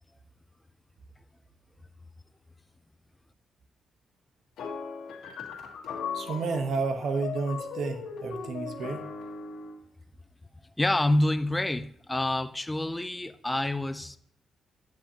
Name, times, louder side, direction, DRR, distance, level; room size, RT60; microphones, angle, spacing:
sound 1, 4.6-9.8, left 5 dB, 90° left, 1.6 m, -38 dB
voice 1, 6.1-9.0, right 4 dB, 70° right, 6 dB, 1.1 m, -31 dB
voice 2, 10.8-14.2, left 1 dB, 15° left, 12 dB, 0.5 m, -27 dB
8.6 x 7.8 x 2.8 m, 0.66 s
cardioid pair, 100°, 0 cm